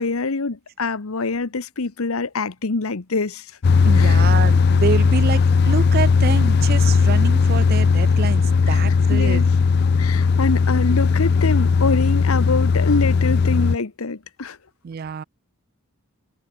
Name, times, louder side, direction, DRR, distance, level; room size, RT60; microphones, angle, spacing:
voice 1, 0.0-3.5 4.0-4.2 8.7-8.8 9.1-9.5 10.0-14.6, left 3 dB, 80° left, 1.0 m, -25 dB
sound 1, 3.6-13.8, left 5 dB, 50° left, 0.4 m, -17 dB
voice 2, 3.8-9.4 14.8-15.2, right 6 dB, 45° right, 0.3 m, -26 dB
head